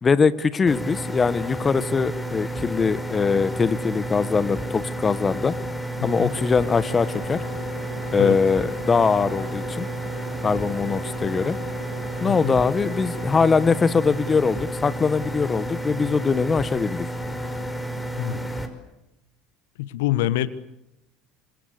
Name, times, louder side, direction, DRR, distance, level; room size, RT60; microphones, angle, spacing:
voice 1, 0.0-5.5 6.0-7.4 8.1-9.9 10.4-11.6 12.2-17.1, left 5 dB, 25° left, 15 dB, 1.5 m, -22 dB
sound 1, 0.7-18.7, right 1 dB, 5° left, 5.5 m, -31 dB
voice 2, 6.0-6.3 8.2-8.4 12.3-12.6 18.2-18.5 19.8-20.5, left 15 dB, 70° left, 14 dB, 1.3 m, -26 dB
sound 2, 6.1-13.3, right 4 dB, 90° right, 3.9 m, -41 dB
27.0 x 26.5 x 8.5 m, 0.90 s
hypercardioid pair, 70°, 0 cm